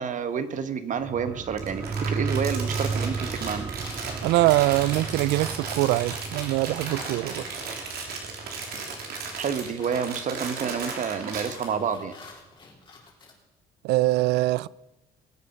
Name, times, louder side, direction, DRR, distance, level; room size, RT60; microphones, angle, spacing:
voice 1, 0.0-3.7 9.4-12.1, right 7 dB, 50° right, 1.2 m, -29 dB
sound 1, 1.0-10.1 10.4-10.5, right 5 dB, 20° right, 0.4 m, -34 dB
Crumpling crinkling, 1.6-11.6, right 4 dB, 65° right, 3.2 m, -35 dB
sound 2, 3.1-8.4 8.7-13.3, left 4 dB, 30° left, 3.8 m, -49 dB
voice 2, 4.2-7.4 13.8-14.7, right 18 dB, 85° right, 0.4 m, -23 dB
20.5 x 8.3 x 5.8 m
cardioid pair, 110°, 17 cm